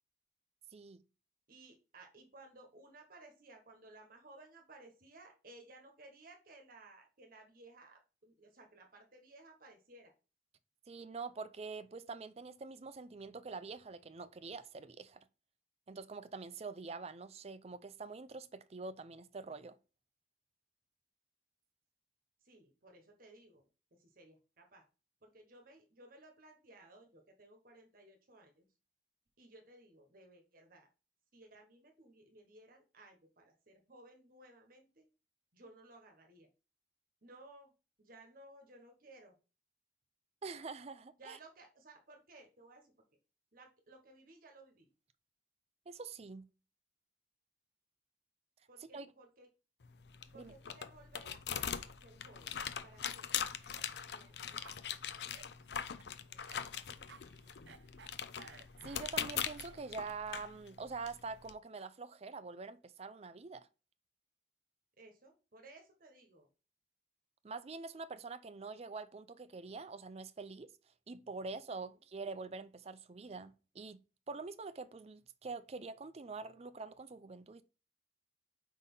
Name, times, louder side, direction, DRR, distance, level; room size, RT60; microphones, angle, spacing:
voice 1, 1.5-10.1 22.4-23.6 23.9-24.8 25.2-28.7 29.4-30.9 31.3-35.1 35.5-36.5 37.2-37.7 38.0-39.3 41.2-42.9 43.5-44.9 48.7-49.5 50.3-52.5 52.8-53.3 54.1-54.7 55.2-55.3 55.9-56.4 56.7-57.2 57.4-57.5 65.0-66.5 71.8-72.0, right 2 dB, 55° right, 1.2 m, -59 dB
voice 2, 10.9-15.2 15.9-19.8 40.4-41.4 45.9-46.4 48.9-49.1 50.3-50.5 58.8-63.7 67.4-70.7 71.1-74.0 74.3-77.6, right 4 dB, 35° right, 0.5 m, -45 dB
sound 1, 49.8-61.5, left 8 dB, 65° left, 0.6 m, -42 dB
Cough, 53.4-60.0, right 5 dB, 70° right, 0.7 m, -59 dB
5.1 x 4.2 x 5.4 m
head